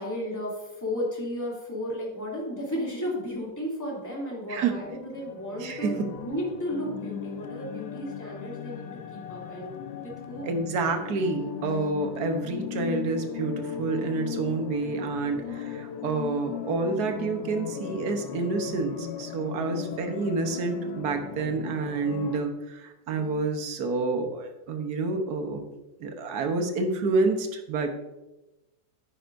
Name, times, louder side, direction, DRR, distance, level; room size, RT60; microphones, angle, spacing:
voice 1, 0.0-9.8 10.0-10.6 11.6-11.7 15.3-15.9 19.6-20.0 23.1-23.4, equal, 10° left, -5 dB, 2.7 m, -34 dB
sound 1, 4.7-22.4, left 9 dB, 85° left, 1.5 m, -37 dB
voice 2, 5.6-6.1 10.4-25.7 26.0-27.9, right 3 dB, 60° right, 5 dB, 1.5 m, -28 dB
9.8 x 9.2 x 2.6 m, 1.0 s
omnidirectional pair, 2.0 m